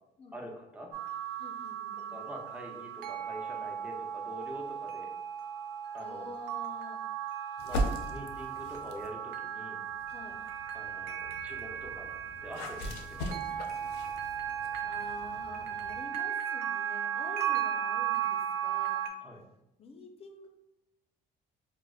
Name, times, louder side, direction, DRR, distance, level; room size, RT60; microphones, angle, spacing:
voice 1, 0.3-0.9 2.1-5.1 5.9-6.3 7.6-9.8 10.7-12.1 12.4-13.4 19.2-19.4, equal, 5° right, 0 dB, 0.6 m, -45 dB
sound 1, 0.9-19.1, right 9 dB, 90° right, 0.4 m, -36 dB
voice 2, 1.4-2.2 6.0-7.0 10.1-10.4 14.1-14.6 14.8-19.1 19.8-20.5, left 3 dB, 35° left, 4 dB, 0.5 m, -48 dB
sound 2, 7.6-9.2 9.8-16.0, equal, 90° left, 0.4 m, -39 dB
4.7 x 2.0 x 2.3 m, 0.93 s
cardioid pair, 110°, 17 cm